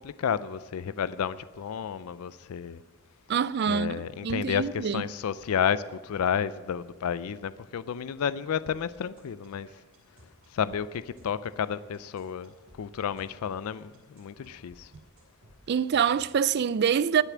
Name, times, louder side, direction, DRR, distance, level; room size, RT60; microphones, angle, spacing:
voice 1, 0.0-2.8 3.7-9.7 10.5-12.5 12.8-14.9, left 8 dB, 75° left, 0.4 m, -31 dB
voice 2, 3.3-5.0 15.7-17.2, right 7 dB, 45° right, 0.3 m, -25 dB
sound 1, 8.7-16.6, equal, 75° right, 5.2 m, -57 dB
20.0 x 6.7 x 6.1 m
head